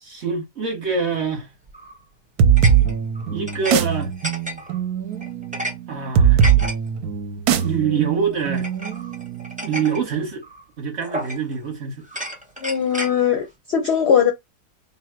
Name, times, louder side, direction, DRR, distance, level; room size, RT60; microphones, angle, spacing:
voice 1, 0.0-1.5 3.3-4.1 5.9-6.4 7.6-8.7 9.6-10.4 10.8-12.0, right 6 dB, 50° right, 1.0 m, -25 dB
sound 1, 1.7-2.0 2.6-3.8 4.0-4.8 5.2-5.7 6.1-6.7 7.5-7.7 8.5-10.0 10.4-10.6 11.0-11.6 12.0-13.2, equal, 10° right, 0.4 m, -32 dB
sound 2, 2.4-9.8, right 8 dB, 75° right, 1.0 m, -20 dB
voice 2, 12.6-14.3, left 8 dB, 65° left, 0.6 m, -20 dB
3.7 x 2.0 x 4.4 m
omnidirectional pair, 1.8 m